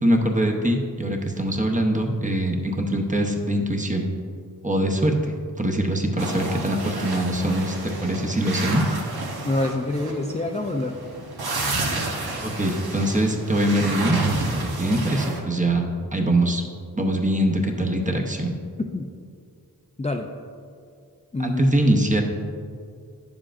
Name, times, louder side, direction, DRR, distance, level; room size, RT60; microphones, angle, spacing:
voice 1, 0.0-4.1 4.6-5.1 5.6-7.7 8.0-8.8 12.4-14.2 14.5-16.6 16.9-18.5 21.4-22.2, right 1 dB, 20° right, 2 dB, 0.8 m, -23 dB
sound 1, 6.2-15.4, right 2 dB, 85° right, 1.0 m, -30 dB
voice 2, 9.4-10.9 18.9-19.1 20.0-20.3 21.3-21.6, left 2 dB, 20° left, 2 dB, 0.4 m, -26 dB
10.0 x 7.1 x 2.5 m, 2.2 s
wide cardioid pair, 80°, 36 cm